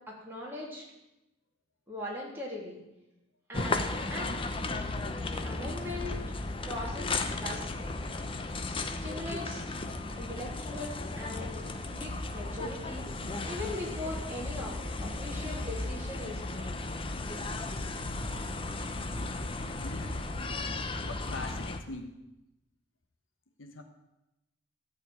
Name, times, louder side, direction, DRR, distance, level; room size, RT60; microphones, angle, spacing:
voice 1, 0.1-0.8 1.9-2.8 3.5-4.4 5.4-6.3 6.6-7.7 9.0-9.6 10.2-13.0 13.4-14.7 15.0-16.8, left 1 dB, 10° right, -5 dB, 3.3 m, -40 dB
sound 1, 3.5-21.8, left 2 dB, 25° left, 0.8 m, -35 dB
voice 2, 19.8-20.1 21.0-22.2 23.6-23.8, left 2 dB, 85° left, 5 dB, 1.3 m, -42 dB
14.5 x 5.0 x 9.0 m, 0.95 s
head